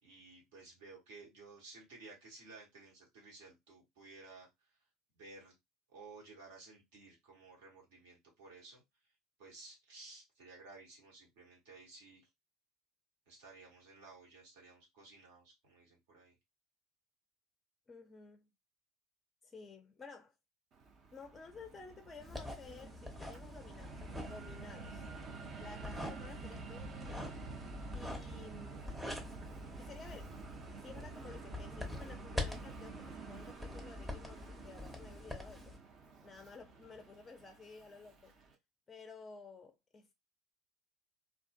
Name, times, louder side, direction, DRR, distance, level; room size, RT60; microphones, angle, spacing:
voice 1, 0.0-4.8 5.1-5.5 5.9-8.8 9.4-12.3 13.3-16.3, right 3 dB, 65° right, 1.2 m, -55 dB
voice 2, 17.9-18.5 19.4-20.3 21.1-25.0 25.6-27.4 27.9-28.8 29.8-30.3 30.8-35.8 36.2-38.3 38.9-40.1, left 4 dB, 20° left, 0.4 m, -53 dB
Fixed-wing aircraft airplane, 20.7-38.5, right 4 dB, 40° right, 0.6 m, -50 dB
sound 1, 22.2-35.8, left 2 dB, 5° right, 0.8 m, -46 dB
2.4 x 2.4 x 2.3 m
figure-of-eight pair, 70°, 0 cm